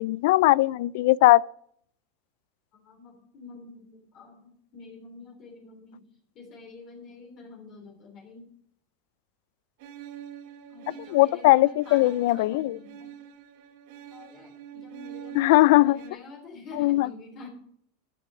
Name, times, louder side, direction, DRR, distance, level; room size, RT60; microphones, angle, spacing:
voice 1, 0.0-1.4 11.1-12.8 15.3-16.0 16.8-17.1, left 18 dB, 65° left, 0.4 m, -19 dB
voice 2, 2.7-8.6 10.7-13.2 14.1-17.5, left 3 dB, 40° left, 3.4 m, -47 dB
sound 1, 9.8-16.1, right 10 dB, 65° right, 2.1 m, -45 dB
12.5 x 8.3 x 6.1 m
supercardioid pair, 140°, 0 cm